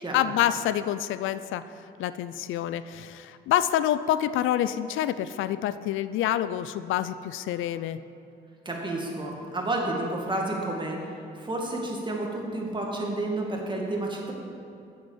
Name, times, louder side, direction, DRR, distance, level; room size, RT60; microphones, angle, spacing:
voice 1, 0.1-1.6 2.0-8.0, left 11 dB, 80° left, 14 dB, 0.4 m, -27 dB
voice 2, 8.7-11.0 11.4-14.3, right 2 dB, 25° right, -1 dB, 2.1 m, -30 dB
7.6 x 7.3 x 7.3 m, 2.7 s
cardioid pair, 90°, 20 cm